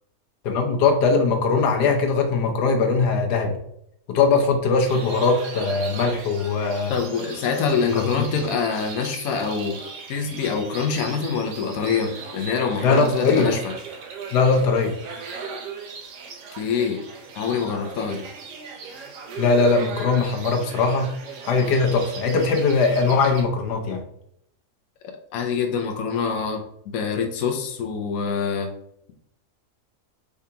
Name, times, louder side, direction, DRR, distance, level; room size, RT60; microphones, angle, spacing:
voice 1, 0.4-3.5 4.1-6.9 8.0-8.2 12.8-13.5 14.3-14.9 19.4-21.1 21.5-24.0, left 4 dB, 85° left, 3 dB, 1.4 m, -20 dB
sound 1, 4.9-23.4, right 5 dB, 75° right, 1.4 m, -38 dB
voice 2, 6.9-9.8 10.1-13.7 16.6-17.0 17.3-18.3 25.3-28.7, left 6 dB, 65° left, 3 dB, 1.1 m, -25 dB
4.9 x 3.4 x 2.8 m, 0.73 s
omnidirectional pair, 1.7 m